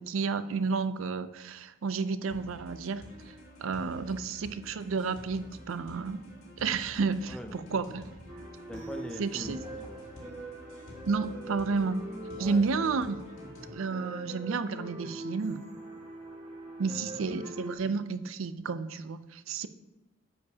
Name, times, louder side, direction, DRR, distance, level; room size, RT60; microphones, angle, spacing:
voice 1, 0.0-3.3 3.6-6.2 6.6-8.2 9.2-9.6 11.1-12.0 12.4-13.2 13.7-15.6 16.8-19.7, right 4 dB, 85° right, 13 dB, 0.5 m, -31 dB
sound 1, 2.3-13.7, equal, 75° left, 2.3 m, -49 dB
voice 2, 7.3-7.6 8.7-10.2 12.4-12.6 16.9-17.2, equal, 5° left, 4 dB, 0.6 m, -43 dB
sound 2, 8.3-17.7, right 1 dB, 30° right, 1.8 m, -43 dB
9.6 x 7.1 x 2.8 m, 1.0 s
head